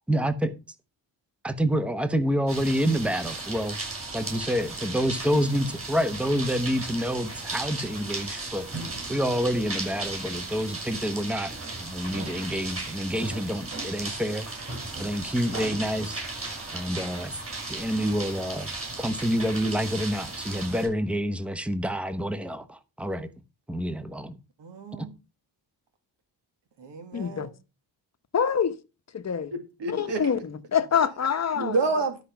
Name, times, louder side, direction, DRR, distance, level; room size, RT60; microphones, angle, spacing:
voice 1, 0.1-0.6 1.4-3.8 4.1-8.7 9.1-11.5 11.8-14.5 15.0-16.2 16.7-17.4 17.7-18.7 19.0-23.3 23.7-24.4 25.0-25.1, equal, 5° right, 0.9 m, -28 dB
sound 1, 2.5-20.9, right 3 dB, 30° right, 6.2 m, -36 dB
voice 2, 24.6-25.1 26.8-27.5 29.5-30.2 31.6-32.2, right 3 dB, 65° right, 2.1 m, -29 dB
voice 3, 27.1-27.5 28.3-28.8 29.1-29.5 29.9-31.8, left 7 dB, 35° left, 1.0 m, -26 dB
12.5 x 5.0 x 5.8 m
cardioid pair, 105°, 45 cm